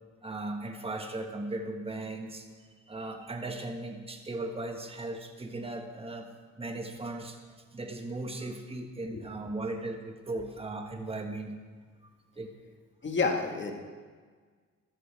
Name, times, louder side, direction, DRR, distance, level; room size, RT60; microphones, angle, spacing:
voice 1, 0.2-2.5 2.9-6.3 6.6-11.5 12.4-12.5, right 2 dB, 20° right, 4 dB, 1.5 m, -37 dB
voice 2, 13.0-13.7, left 4 dB, 40° left, 3 dB, 1.8 m, -29 dB
13.5 x 13.0 x 3.5 m, 1.5 s
cardioid pair, 90°, 30 cm